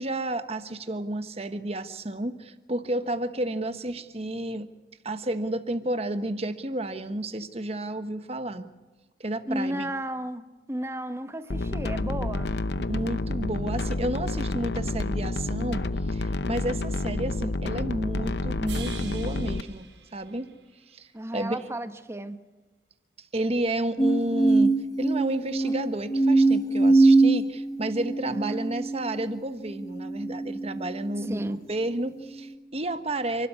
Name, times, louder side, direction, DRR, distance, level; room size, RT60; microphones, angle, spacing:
voice 1, 0.0-4.7 5.0-8.7 9.2-9.9 12.8-20.5 20.9-21.1 21.3-21.6 23.2-33.5, right 1 dB, 35° right, 1.2 m, -31 dB
voice 2, 9.5-12.6 21.1-22.4 28.3-28.7 31.3-31.6, right 1 dB, 15° right, 1.1 m, -33 dB
sound 1, 11.5-19.6, left 2 dB, 65° left, 0.8 m, -29 dB
sound 2, 18.7-21.0, right 8 dB, 75° right, 5.7 m, -45 dB
sound 3, 24.0-31.4 32.0-32.5, right 2 dB, 20° left, 1.3 m, -23 dB
30.0 x 13.0 x 9.7 m
head